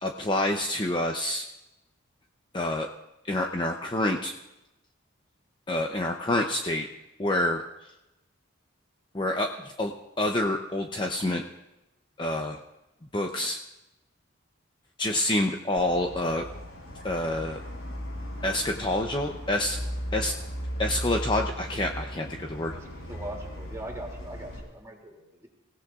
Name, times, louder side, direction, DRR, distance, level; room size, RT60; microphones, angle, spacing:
voice 1, 0.0-1.5 2.5-2.9 3.3-4.3 5.7-6.9 7.2-7.6 9.1-9.9 10.2-11.4 12.2-12.6 13.1-13.6 15.0-16.4 17.0-17.6 18.4-19.8 20.1-20.3 20.8-22.8, left 1 dB, 20° left, 3 dB, 0.7 m, -27 dB
sound 1, 15.8-24.6, equal, 80° left, 7.0 m, -37 dB
voice 2, 22.7-25.5, right 1 dB, 15° right, 0 dB, 2.7 m, -41 dB
28.0 x 16.5 x 2.5 m, 0.95 s
head